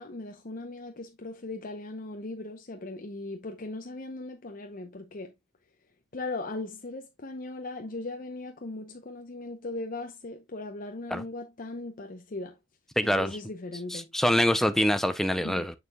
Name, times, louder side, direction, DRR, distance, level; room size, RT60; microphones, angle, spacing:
voice 1, 0.0-5.3 6.1-12.5 13.0-14.1 15.4-15.7, left 2 dB, 45° left, 0.7 m, -38 dB
voice 2, 13.0-13.4 13.9-15.8, equal, ahead, 0.5 m, -25 dB
6.8 x 6.4 x 2.3 m
head